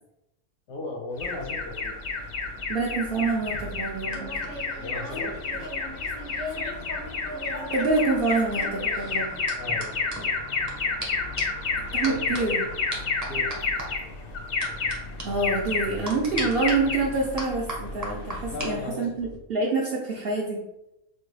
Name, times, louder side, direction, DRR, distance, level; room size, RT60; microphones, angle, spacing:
voice 1, 0.7-1.9 4.8-5.7 9.6-10.0 12.0-12.6 13.3-13.5 18.5-19.1, left 2 dB, 80° left, 0 dB, 1.2 m, -36 dB
Alarm, 1.2-18.8, left 4 dB, 60° left, 0.6 m, -31 dB
voice 2, 2.7-4.3 7.7-9.3 11.9-12.6 15.2-20.6, right 3 dB, 65° right, -2 dB, 0.6 m, -26 dB
sound 1, 3.3-6.7 7.0-10.7 11.0-11.1 11.4-11.6 12.0-12.4 12.9-13.9 14.6-14.9 15.2-15.3 16.1-16.7 17.4-18.7 19.0-19.4, right 1 dB, 20° right, 0.5 m, -37 dB
4.2 x 2.2 x 3.1 m, 0.90 s
omnidirectional pair, 1.5 m